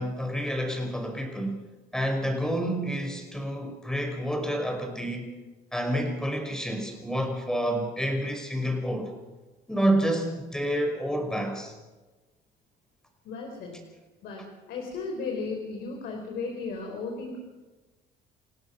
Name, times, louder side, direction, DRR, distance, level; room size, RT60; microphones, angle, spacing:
voice 1, 0.0-1.6 1.9-5.3 5.7-9.1 9.7-11.7, equal, 5° left, 3 dB, 5.4 m, -29 dB
voice 2, 13.2-13.9 14.2-17.4, left 4 dB, 70° left, 1 dB, 4.4 m, -35 dB
29.5 x 17.0 x 6.0 m, 1.2 s
cardioid pair, 110°, 17 cm